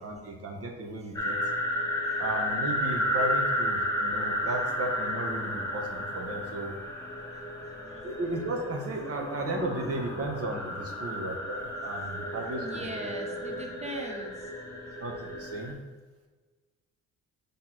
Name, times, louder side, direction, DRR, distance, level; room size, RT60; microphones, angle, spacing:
voice 1, 0.0-1.4 2.2-6.7 8.0-12.8 15.0-15.8, right 2 dB, 50° right, 2 dB, 1.3 m, -34 dB
sound 1, 1.1-15.7, equal, 10° left, 1.4 m, -32 dB
voice 2, 7.3-8.0 12.3-14.5, equal, 20° right, 2 dB, 1.1 m, -41 dB
6.1 x 3.5 x 4.4 m, 1.3 s
cardioid pair, 90°, 30 cm